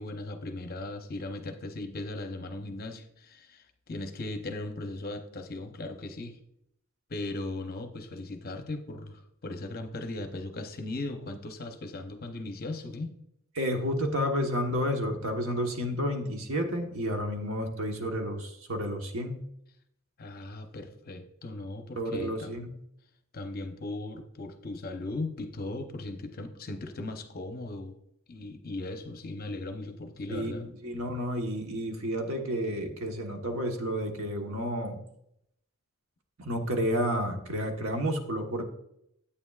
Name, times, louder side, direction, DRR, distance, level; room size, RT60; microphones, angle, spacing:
voice 1, 0.0-6.4 7.1-13.1 20.2-22.5 23.3-28.0 28.3-30.7, left 2 dB, 40° left, 6 dB, 0.7 m, -38 dB
voice 2, 13.5-19.4 22.0-22.7 30.3-35.0 36.4-38.6, equal, 70° right, 3 dB, 1.2 m, -31 dB
9.7 x 8.6 x 2.4 m, 0.76 s
head